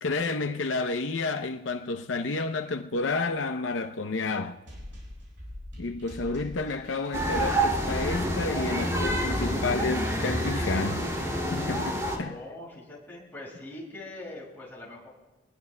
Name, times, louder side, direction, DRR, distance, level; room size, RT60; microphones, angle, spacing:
voice 1, 0.0-4.6 5.8-11.0 11.5-12.4, left 3 dB, 85° left, 0.6 m, -30 dB
sound 1, 4.7-10.3, left 1 dB, 75° right, 7.1 m, -44 dB
sound 2, 7.1-12.2, equal, 20° right, 2.5 m, -28 dB
voice 2, 12.1-15.1, left 2 dB, 10° left, 6.3 m, -42 dB
26.5 x 20.0 x 2.2 m
head